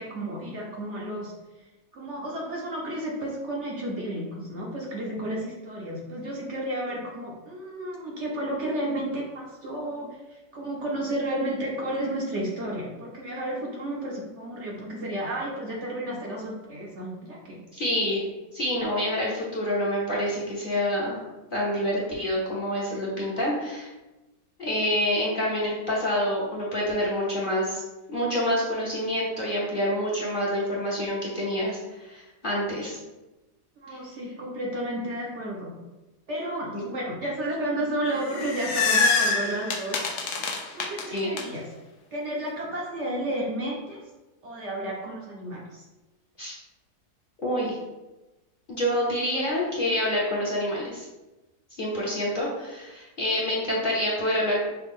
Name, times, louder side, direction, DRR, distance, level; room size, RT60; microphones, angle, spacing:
voice 1, 0.0-1.3 1.9-17.6 33.8-35.7 36.3-40.1 40.7-41.6 42.1-44.0 44.4-45.9, right 1 dB, 55° right, -3 dB, 0.9 m, -32 dB
voice 2, 17.7-18.2 18.5-21.2 21.5-23.9 24.6-27.8 28.1-33.0 36.7-36.8 41.1-41.3 46.4-46.6 47.4-47.8 48.7-51.1 51.8-54.7, equal, 40° left, -6 dB, 0.9 m, -27 dB
sound 1, 38.1-41.4, left 4 dB, 65° left, 0.9 m, -25 dB
5.8 x 2.2 x 3.6 m, 1.1 s
omnidirectional pair, 1.7 m